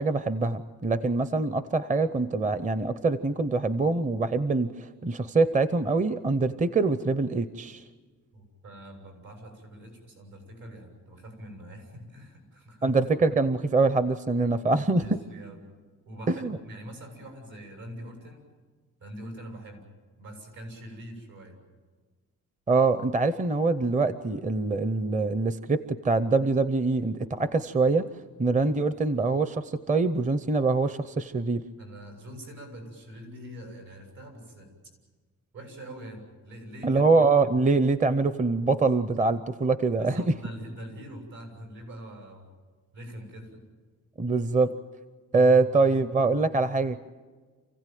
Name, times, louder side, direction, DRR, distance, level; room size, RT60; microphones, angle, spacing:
voice 1, 0.0-7.8 12.8-15.0 16.4-16.6 22.7-28.1 28.4-31.6 36.8-40.2 44.2-44.7 45.3-47.0, right 3 dB, 20° right, 13 dB, 0.6 m, -24 dB
voice 2, 8.3-13.0 14.4-15.6 16.1-18.4 19.0-19.9 20.2-21.6 31.8-34.7 35.5-37.0 40.0-42.5 42.9-43.6, equal, 75° right, 3 dB, 7.1 m, -44 dB
28.0 x 16.0 x 9.2 m, 1.4 s
wide cardioid pair, 150°, 33 cm